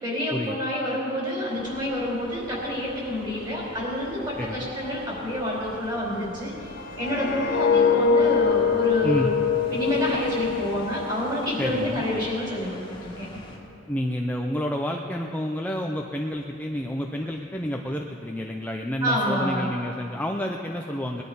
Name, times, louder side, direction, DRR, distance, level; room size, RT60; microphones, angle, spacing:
voice 1, 0.0-6.5 7.0-9.4 9.7-13.3 19.0-19.7, left 1 dB, 20° right, -4 dB, 4.3 m, -28 dB
sound 1, 1.4-13.6, left 1 dB, 25° left, 2.0 m, -44 dB
sound 2, 6.6-11.7 12.0-12.3, left 6 dB, 50° left, 1.2 m, -24 dB
voice 2, 11.6-12.0 13.9-21.2, left 1 dB, 10° left, 1 dB, 0.5 m, -29 dB
20.0 x 11.5 x 5.3 m, 2.9 s
head